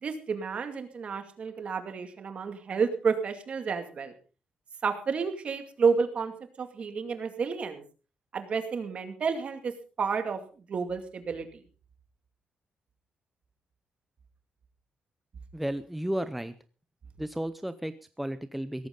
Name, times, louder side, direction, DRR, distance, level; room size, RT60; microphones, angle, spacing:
voice 1, 0.0-4.1 4.8-7.8 8.3-9.7 10.0-10.4 10.7-11.6, right 5 dB, 45° right, 7 dB, 2.3 m, -30 dB
voice 2, 15.5-16.5 17.2-18.9, right 1 dB, 5° right, 11 dB, 0.6 m, -33 dB
17.0 x 14.5 x 3.8 m, 0.35 s
wide cardioid pair, 160°, 3 cm